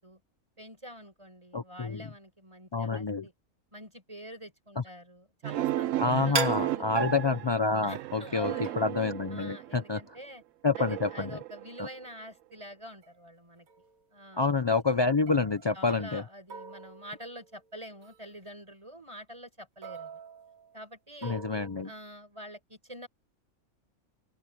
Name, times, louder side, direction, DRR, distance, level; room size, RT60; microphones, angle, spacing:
voice 1, 0.6-3.3 3.7-7.0 7.8-8.8 9.3-10.4 10.8-13.7 14.1-14.4 15.7-20.1 20.7-21.4 21.8-23.1, equal, 20° right, 5.8 m, -46 dB
voice 2, 1.5-2.1 2.7-3.3 4.8-4.9 6.0-10.2 10.6-11.4 11.8-11.9 14.4-16.2 21.2-21.9, left 4 dB, 45° left, 0.3 m, -28 dB
sound 1, 5.4-10.0 10.7-12.3, right 14 dB, 70° right, 0.9 m, -35 dB
sound 2, 6.3-8.0 8.6-9.1 13.0-13.1 13.7-14.0 15.3-16.2 16.5-17.6 18.0-18.2 19.8-20.8 21.2-21.9, right 6 dB, 85° right, 2.1 m, -38 dB
open air
omnidirectional pair, 1.5 m